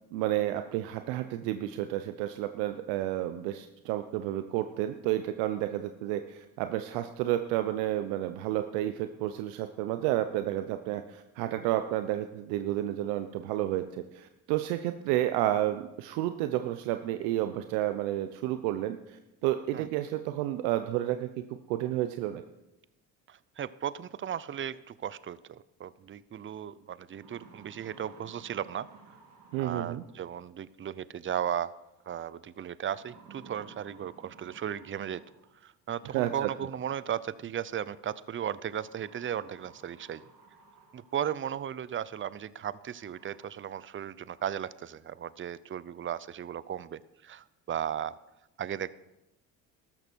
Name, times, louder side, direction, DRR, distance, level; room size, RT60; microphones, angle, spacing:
voice 1, 0.1-22.4 29.5-30.0 36.1-36.5, right 13 dB, 85° right, 9 dB, 0.7 m, -31 dB
voice 2, 23.3-28.9 29.6-31.7 32.1-35.2 35.6-40.2 40.9-48.2 48.6-48.9, right 9 dB, 30° right, 18 dB, 0.6 m, -36 dB
sound 1, 26.3-26.4 26.9-30.3 31.7-32.1 32.9-35.7 37.0-37.1 38.6-41.4 41.9-42.0 42.6-42.7 42.9-43.5, right 5 dB, 70° right, 3.0 m, -55 dB
13.5 x 13.0 x 4.6 m, 0.95 s
supercardioid pair, 70°, 38 cm